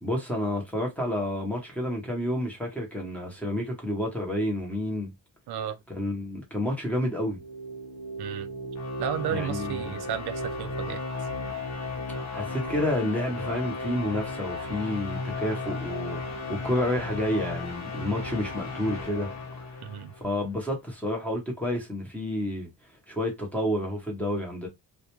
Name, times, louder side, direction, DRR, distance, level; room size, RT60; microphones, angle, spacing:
voice 1, 0.0-5.1 5.9-7.4 9.3-10.0 12.3-19.3 19.7-19.8 20.2-22.7 23.1-24.7, left 1 dB, 5° left, 0.8 m, -30 dB
voice 2, 5.5-5.8 8.2-8.5 9.0-11.0 19.8-20.1, right 9 dB, 85° right, 0.5 m, -33 dB
sound 1, 7.2-20.3, left 2 dB, 45° left, 0.7 m, -35 dB
2.4 x 2.1 x 2.9 m
wide cardioid pair, 165°, 38 cm